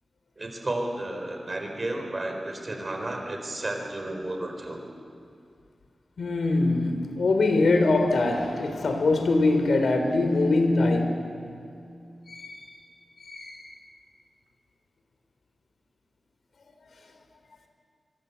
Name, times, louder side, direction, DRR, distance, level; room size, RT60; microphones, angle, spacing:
voice 1, 0.4-4.8, right 1 dB, 30° right, 4.2 m, -32 dB
voice 2, 6.2-11.2 12.3-12.7 13.2-13.7, left 2 dB, 75° left, 3.4 m, -23 dB
24.5 x 23.5 x 8.2 m
wide cardioid pair, 120°, 0 cm